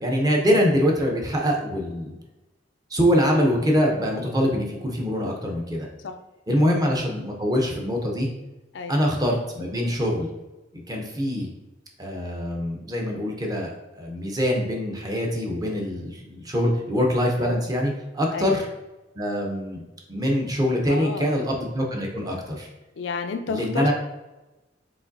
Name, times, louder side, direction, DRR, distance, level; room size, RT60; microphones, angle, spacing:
voice 1, 0.0-2.2 2.9-5.9 6.5-8.3 8.9-10.3 10.9-11.5 12.0-18.7 19.2-19.8 20.1-22.7 23.5-23.9, equal, 20° right, 0 dB, 0.6 m, -24 dB
voice 2, 20.9-21.5 23.0-23.9, left 4 dB, 70° left, 7 dB, 0.4 m, -31 dB
4.9 x 3.7 x 2.6 m, 1.0 s
head